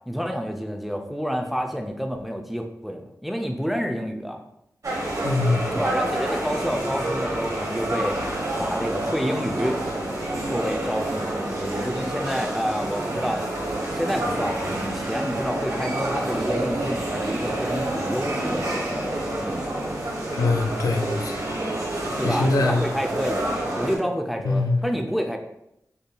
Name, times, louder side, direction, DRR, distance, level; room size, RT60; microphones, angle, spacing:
voice 1, 0.1-4.4 5.7-8.2 8.6-9.8 10.5-13.5 13.9-19.7 22.2-25.4, equal, ahead, 3 dB, 0.5 m, -29 dB
sound 1, 4.8-24.0, right 1 dB, 70° right, 1.1 m, -28 dB
voice 2, 5.2-5.7 20.3-21.4 22.2-22.8 24.4-24.8, left 3 dB, 85° left, 4 dB, 0.5 m, -23 dB
6.6 x 2.7 x 2.3 m, 0.81 s
wide cardioid pair, 65°, 6 cm